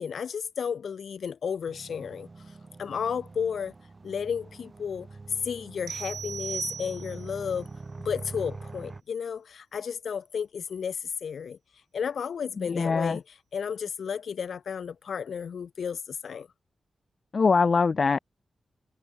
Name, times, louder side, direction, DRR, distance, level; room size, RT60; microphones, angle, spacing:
voice 1, 0.0-2.3 2.8-3.7 4.0-5.1 5.4-7.7 8.1-11.6 11.9-13.2 13.5-16.5, left 7 dB, 65° left, 1.7 m, -33 dB
sound 1, 1.7-9.0, right 3 dB, 30° right, 4.5 m, -44 dB
sound 2, 5.9-7.4, right 7 dB, 70° right, 0.9 m, -37 dB
voice 2, 12.6-13.2 17.3-18.2, left 4 dB, 40° left, 0.3 m, -23 dB
wide cardioid pair, 125°, 0 cm